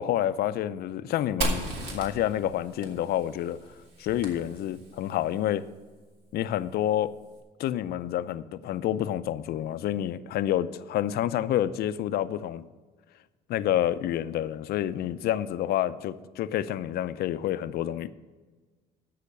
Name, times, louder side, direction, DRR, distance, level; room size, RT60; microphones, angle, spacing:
voice 1, 0.0-3.6 4.0-5.6 6.3-7.1 7.6-12.6 13.5-18.1, left 12 dB, 70° left, 14 dB, 0.5 m, -28 dB
Fire, 1.4-5.1, right 2 dB, 80° right, 2.5 m, -35 dB
13.5 x 5.7 x 6.8 m, 1.4 s
cardioid pair, 110°, 17 cm